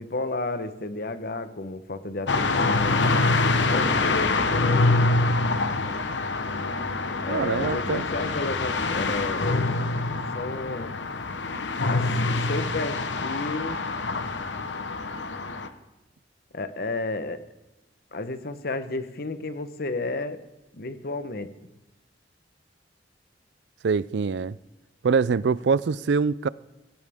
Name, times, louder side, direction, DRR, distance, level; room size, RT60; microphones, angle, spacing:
voice 1, 0.0-4.8 7.2-9.5 10.3-10.9 11.8-13.8 16.5-17.4 18.1-20.4 20.7-21.5, left 2 dB, 55° left, 1.1 m, -32 dB
sound 1, 2.3-15.7, left 3 dB, 85° left, 1.1 m, -25 dB
voice 2, 7.3-8.1 23.8-24.6 25.0-26.5, right 5 dB, 70° right, 0.4 m, -24 dB
17.0 x 16.0 x 3.6 m
head